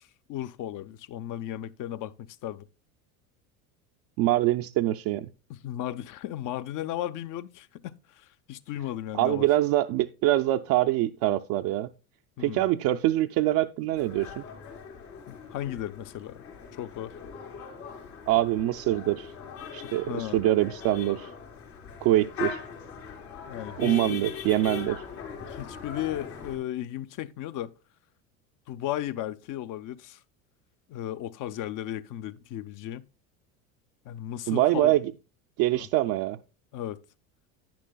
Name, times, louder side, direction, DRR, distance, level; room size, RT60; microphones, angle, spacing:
voice 1, 0.0-2.6 5.5-9.5 12.4-12.7 15.3-16.4 16.8-17.1 19.8-20.4 23.5-24.2 25.5-27.7 28.7-30.2 30.9-33.1 34.0-34.9 35.7-35.9 36.7-37.0, left 12 dB, 45° left, 0.6 m, -35 dB
voice 2, 4.2-5.3 9.1-11.9 12.4-14.4 18.3-19.3 19.7-21.3 22.0-22.6 23.8-25.0 34.5-35.0 35.6-36.4, right 15 dB, 55° right, 0.5 m, -24 dB
sound 1, 13.9-26.6, left 6 dB, 80° left, 3.4 m, -40 dB
10.0 x 9.2 x 2.2 m
hypercardioid pair, 85°, 44 cm